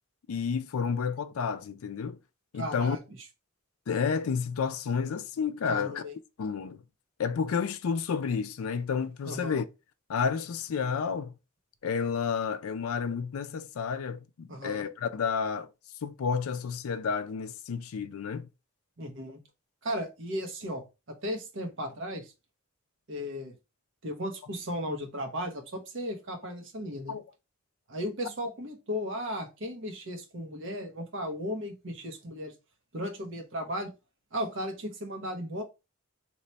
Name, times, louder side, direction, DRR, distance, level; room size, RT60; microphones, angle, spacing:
voice 1, 0.3-2.2 2.5-3.0 3.9-6.0 6.4-6.8 7.2-9.6 10.1-11.3 11.8-15.7 16.0-18.5 27.1-27.2, left 6 dB, 85° left, 0.4 m, -30 dB
voice 2, 2.5-3.0 5.7-6.1 9.2-9.6 14.5-14.8 19.0-19.4 19.8-20.9 21.2-22.3 23.1-23.6 24.0-27.2 27.9-32.5 32.9-33.9 34.3-35.6, equal, 60° right, 0.8 m, -35 dB
3.0 x 2.1 x 4.0 m
head